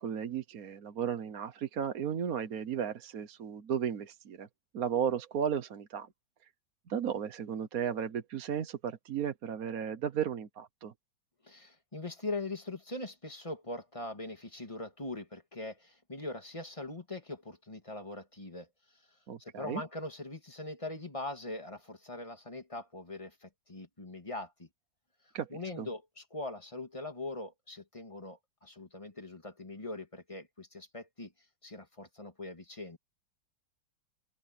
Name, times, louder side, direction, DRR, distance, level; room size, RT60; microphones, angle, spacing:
voice 1, 0.0-4.5 4.7-6.1 6.9-10.9 19.3-19.8 25.3-25.5 25.8-25.9, right 8 dB, 55° right, 1.3 m, -34 dB
voice 2, 11.4-18.7 19.4-24.7 25.5-31.3 31.6-33.0, left 2 dB, 15° left, 2.3 m, -41 dB
open air
omnidirectional pair, 2.1 m